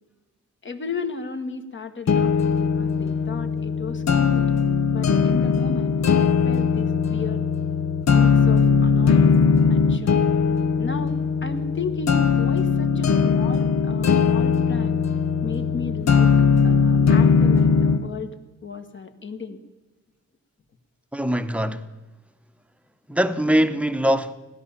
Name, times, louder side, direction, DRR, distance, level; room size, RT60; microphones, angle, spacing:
voice 1, 0.6-4.4 4.9-7.4 8.1-9.3 9.7-10.2 10.8-15.0 15.4-16.3 16.6-19.6, left 4 dB, 40° left, 1.4 m, -35 dB
sound 1, 2.1-18.1, left 6 dB, 65° left, 0.9 m, -20 dB
voice 2, 21.1-21.8 23.1-24.3, equal, 5° right, 0.9 m, -22 dB
16.5 x 11.5 x 7.3 m
wide cardioid pair, 110°, 29 cm